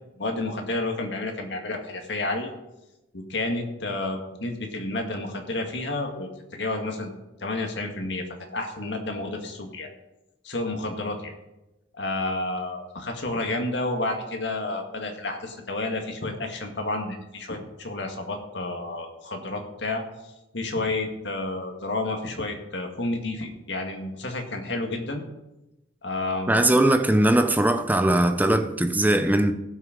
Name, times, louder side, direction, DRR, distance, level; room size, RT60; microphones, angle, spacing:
voice 1, 0.2-2.5 3.1-7.1 7.4-8.2 8.5-9.9 10.4-11.3 12.0-20.0 20.5-25.2 26.0-26.7, left 2 dB, 65° left, 1.8 m, -30 dB
voice 2, 26.5-29.5, right 1 dB, 10° right, 0.6 m, -20 dB
16.5 x 6.2 x 5.2 m
head